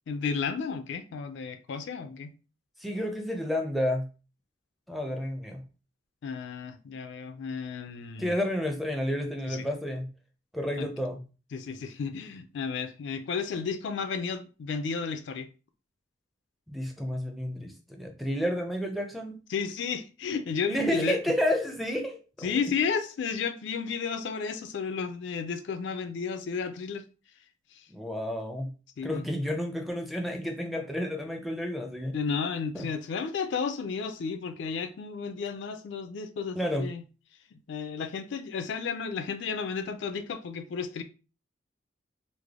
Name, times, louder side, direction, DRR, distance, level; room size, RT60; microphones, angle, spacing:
voice 1, 0.1-2.3 6.2-8.3 9.4-9.7 10.8-10.9 11.5-15.5 19.5-21.2 22.4-27.1 27.7-27.9 29.0-29.3 32.1-37.0 37.5-41.0, left 5 dB, 65° left, 0.4 m, -33 dB
voice 2, 2.8-4.1 4.9-5.6 8.2-10.1 10.5-11.2 16.7-19.4 20.7-22.5 27.9-28.7 29.0-32.1 32.7-32.9 36.6-36.9, equal, ahead, 0.4 m, -30 dB
3.3 x 2.1 x 3.5 m
head